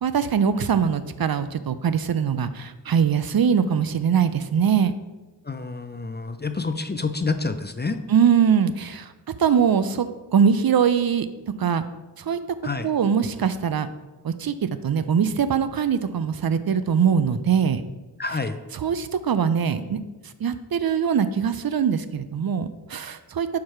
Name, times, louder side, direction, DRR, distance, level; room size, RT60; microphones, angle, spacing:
voice 1, 0.0-4.9 8.1-9.1 9.4-10.1 10.3-11.3 11.6-11.8 12.2-12.4 12.8-13.9 14.2-14.5 14.8-17.8 18.7-20.0 20.4-23.5, right 7 dB, 60° right, 12 dB, 0.5 m, -22 dB
voice 2, 5.4-8.0 12.6-12.9 18.2-18.6, left 4 dB, 25° left, 9 dB, 0.4 m, -28 dB
4.7 x 4.6 x 5.7 m, 1.1 s
wide cardioid pair, 40°, 41 cm